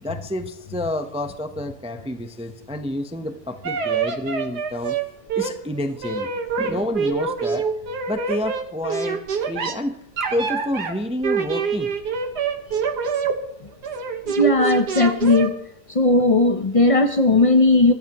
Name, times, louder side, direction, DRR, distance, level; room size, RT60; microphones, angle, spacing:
voice 1, 0.0-5.0 5.3-6.3 6.6-7.7 8.1-10.0 10.3-11.9, left 1 dB, 5° right, 7 dB, 0.5 m, -29 dB
sound 1, 3.6-5.0 5.3-5.5 5.8-9.7 10.2-10.9 11.2-13.3 13.8-15.5, right 6 dB, 90° right, 2.0 m, -25 dB
voice 2, 14.4-15.5 15.9-17.9, left 2 dB, 45° left, 7 dB, 0.4 m, -17 dB
24.0 x 13.0 x 3.0 m, 0.77 s
omnidirectional pair, 1.7 m